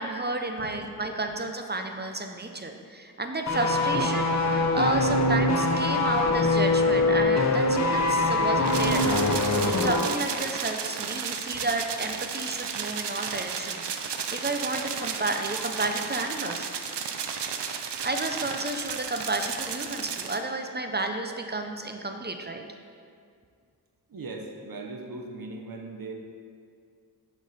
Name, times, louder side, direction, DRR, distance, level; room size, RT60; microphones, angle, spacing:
voice 1, 0.0-16.7 17.7-22.6, right 2 dB, 25° right, 5 dB, 0.5 m, -32 dB
sound 1, 3.5-10.2 10.4-10.6, left 2 dB, 45° left, 0.6 m, -23 dB
sound 2, 8.6-20.4, right 6 dB, 80° right, 0.6 m, -33 dB
voice 2, 24.1-26.1, right 3 dB, 55° right, 2 dB, 0.8 m, -39 dB
7.4 x 5.2 x 4.1 m, 2.2 s
wide cardioid pair, 65°, 41 cm